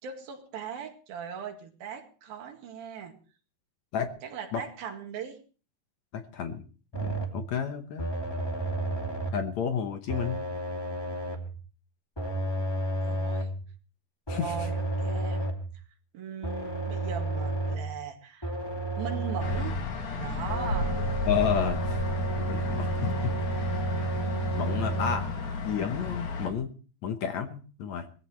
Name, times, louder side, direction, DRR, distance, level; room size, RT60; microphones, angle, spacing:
voice 1, 0.0-3.2 4.2-5.4 13.0-13.5 14.3-15.5 16.1-18.5 19.0-19.8 20.2-21.0, right 7 dB, 85° right, 4 dB, 3.9 m, -39 dB
voice 2, 6.1-6.6 7.0-8.1 9.3-10.4 14.3-14.7 21.3-22.0 22.4-23.4 24.5-25.3 25.6-26.7 27.0-28.1, left 7 dB, 65° left, 7 dB, 2.0 m, -31 dB
sound 1, 6.9-7.5 8.0-9.5 10.1-11.6 12.2-13.6 14.3-15.7 16.4-18.0 18.4-19.8 20.5-25.2, right 2 dB, 10° left, 1.5 m, -31 dB
sound 2, 19.4-26.5, left 3 dB, 80° left, 4.3 m, -33 dB
21.5 x 15.5 x 3.2 m, 0.38 s
omnidirectional pair, 4.1 m